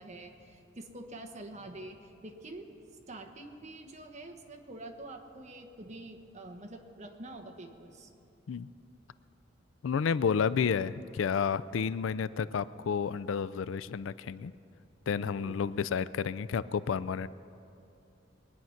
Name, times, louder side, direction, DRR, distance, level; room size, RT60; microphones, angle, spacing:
voice 1, 0.0-2.8 3.1-8.1 15.1-15.7, right 2 dB, 40° right, 4 dB, 1.2 m, -46 dB
voice 2, 9.8-14.5 15.1-17.3, left 6 dB, 85° left, 17 dB, 0.4 m, -31 dB
22.0 x 9.4 x 5.8 m, 2.6 s
head